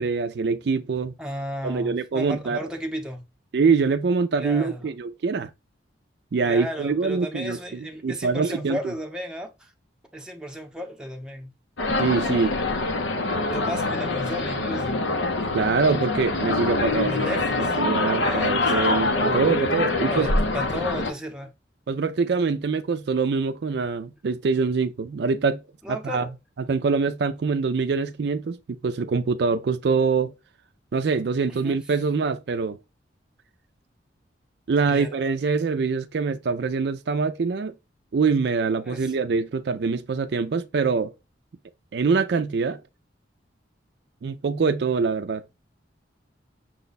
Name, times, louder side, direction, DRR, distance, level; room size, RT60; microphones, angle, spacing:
voice 1, 0.0-1.1 1.6-2.6 3.5-5.5 6.3-7.6 8.0-8.8 12.0-12.6 15.5-20.3 21.9-25.6 25.9-26.3 26.7-30.3 30.9-32.8 34.7-37.7 38.1-41.1 41.9-42.8 44.2-45.4, right 4 dB, 60° right, 0.4 m, -24 dB
voice 2, 1.2-3.2 4.4-4.9 6.4-9.7 10.1-11.5 13.5-15.0 16.9-17.8 18.1-19.4 20.1-21.5 25.8-26.3 31.5-31.8 34.9-35.2 35.6-35.9 38.8-39.3, equal, 5° right, 0.7 m, -34 dB
sound 1, 11.8-21.1, left 2 dB, 75° left, 0.7 m, -25 dB
6.1 x 2.2 x 4.0 m
head